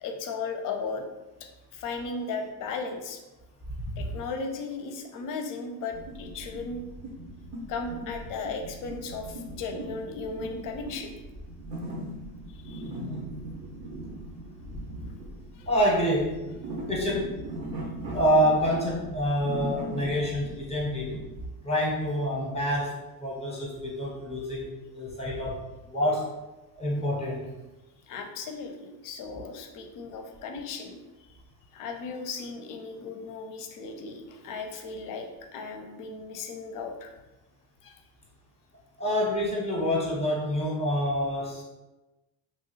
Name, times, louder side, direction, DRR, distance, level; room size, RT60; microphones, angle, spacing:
voice 1, 0.0-1.1 1.4-3.2 4.0-6.8 7.7-11.2 12.6-12.9 15.5-15.7 28.1-31.0 31.3-31.4 31.7-37.1 37.8-38.0, left 4 dB, 40° left, 4 dB, 0.5 m, -36 dB
sound 1, 5.9-21.4, right 1 dB, 85° right, 1.2 m, -39 dB
voice 2, 12.9-13.2 15.7-16.5 16.9-17.3 18.1-21.2 21.6-25.6 25.9-26.3 26.8-27.5 39.0-41.6, equal, 10° left, -4 dB, 0.8 m, -27 dB
3.0 x 2.2 x 3.1 m, 1.0 s
supercardioid pair, 105°, 50 cm